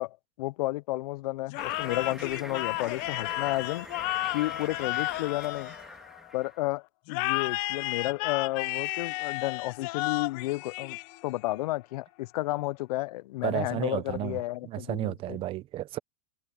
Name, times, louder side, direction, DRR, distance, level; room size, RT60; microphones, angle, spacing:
voice 1, 0.0-3.9 4.3-5.7 6.3-15.4, left 18 dB, 70° left, 0.4 m, -32 dB
sound 1, 1.5-6.3 7.1-11.5, left 23 dB, 45° left, 0.8 m, -33 dB
sound 2, 1.6-6.6, right 1 dB, ahead, 2.4 m, -44 dB
voice 2, 13.4-16.0, right 15 dB, 25° right, 0.6 m, -33 dB
supercardioid pair, 150°, 20 cm